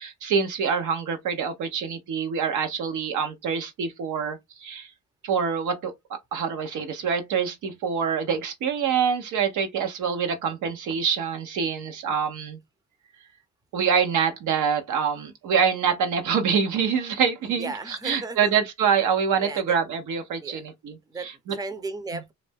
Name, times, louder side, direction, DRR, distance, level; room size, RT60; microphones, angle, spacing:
voice 1, 0.0-4.9 5.2-5.9 6.3-12.6 13.7-21.6, right 6 dB, 80° right, 0.8 m, -25 dB
voice 2, 17.6-18.5 19.4-19.8 20.4-20.6 21.1-22.3, right 3 dB, 15° right, 0.6 m, -35 dB
2.5 x 2.1 x 3.4 m
cardioid pair, 90°, 30 cm